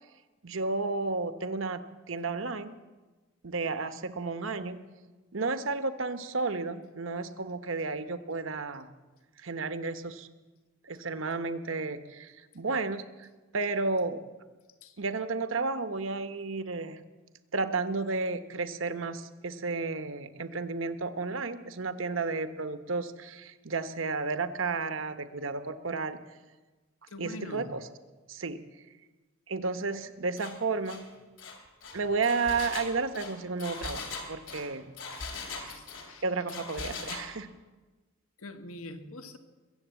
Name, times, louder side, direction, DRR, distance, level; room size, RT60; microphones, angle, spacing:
voice 1, 0.4-2.8 3.4-4.8 5.3-8.9 9.4-10.3 10.9-13.3 13.5-14.2 15.0-17.0 17.5-26.2 27.2-27.8 28.3-28.6 29.5-31.1 31.9-34.9 35.5-35.7 36.2-37.5, right 3 dB, 65° right, 11 dB, 1.0 m, -32 dB
voice 2, 27.1-27.8 35.5-36.2 38.4-39.4, left 2 dB, 85° left, 7 dB, 1.5 m, -44 dB
Engine, 30.4-30.6 30.9-31.0 31.4-36.1 36.5-37.3, left 4 dB, 60° left, 2.8 m, -40 dB
21.5 x 8.0 x 8.1 m, 1.2 s
head